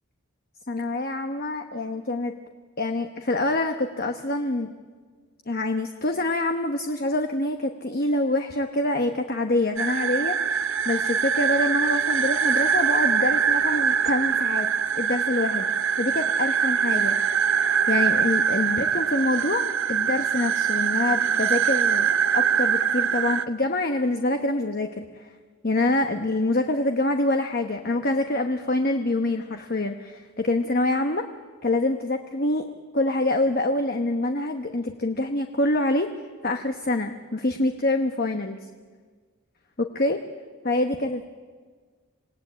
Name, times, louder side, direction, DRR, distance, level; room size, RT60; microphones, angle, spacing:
voice 1, 0.7-2.3 2.8-4.7 5.5-14.7 14.9-17.4 17.9-25.3 25.6-31.2 31.6-32.7 32.9-36.1 36.4-38.6 39.8-40.2 40.6-41.2, left 2 dB, 45° left, 6 dB, 1.1 m, -26 dB
sound 1, 9.8-23.4, right 7 dB, 65° right, 0.8 m, -23 dB
27.0 x 18.0 x 8.8 m, 1.5 s
head